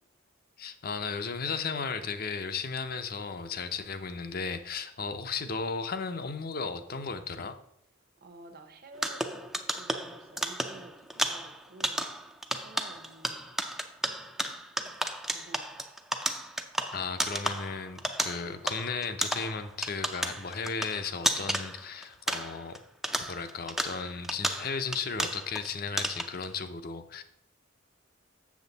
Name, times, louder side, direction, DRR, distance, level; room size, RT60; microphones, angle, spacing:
voice 1, 0.6-7.6 16.9-22.8 23.2-27.2, left 5 dB, 50° left, 9 dB, 0.7 m, -35 dB
voice 2, 8.2-9.5 9.8-12.0 12.5-13.6 14.4-14.5 15.3-16.1, right 2 dB, 50° right, 6 dB, 1.0 m, -51 dB
sound 1, 8.9-22.8 23.0-25.7 26.0-26.5, right 1 dB, ahead, 0.4 m, -33 dB
7.3 x 6.7 x 4.0 m, 0.74 s
head